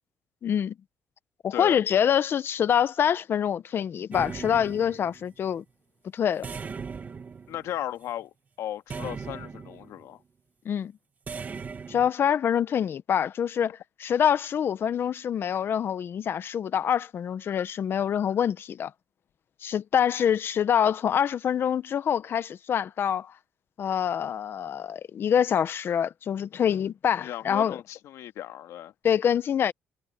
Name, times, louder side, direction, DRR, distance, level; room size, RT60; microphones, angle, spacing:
voice 1, 0.4-0.7 1.4-5.6 6.1-6.5 10.6-10.9 11.9-18.9 19.6-23.3 23.8-27.8 29.0-29.7, left 8 dB, 50° left, 1.0 m, -25 dB
sound 1, 4.1-5.4 6.4-8.1 8.9-10.0 11.3-12.1, right 5 dB, 35° right, 1.6 m, -38 dB
voice 2, 7.5-10.2 27.2-28.9, left 12 dB, 80° left, 2.0 m, -36 dB
cardioid pair, 120°, 5 cm